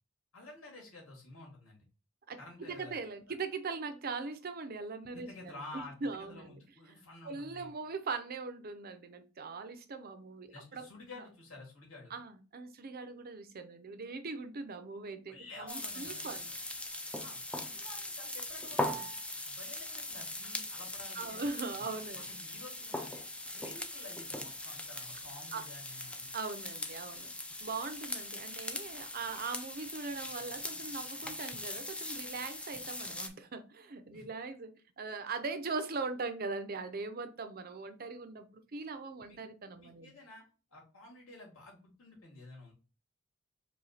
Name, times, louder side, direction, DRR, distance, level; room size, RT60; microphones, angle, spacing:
voice 1, 0.3-1.9 2.4-3.0 5.1-7.7 10.5-12.1 15.3-16.6 17.2-19.1 19.4-21.5 21.8-23.2 23.5-26.3 34.1-34.3 39.3-39.4 39.8-40.4 40.7-42.7, left 2 dB, 75° left, 2.3 m, -51 dB
voice 2, 2.7-6.6 7.2-10.9 12.1-16.5 21.1-22.3 25.5-25.6 26.3-27.3 27.6-38.5 38.7-40.1, right 4 dB, 45° right, 0.6 m, -40 dB
sound 1, 15.7-33.3, left 2 dB, 5° left, 0.4 m, -40 dB
4.9 x 2.3 x 4.1 m
head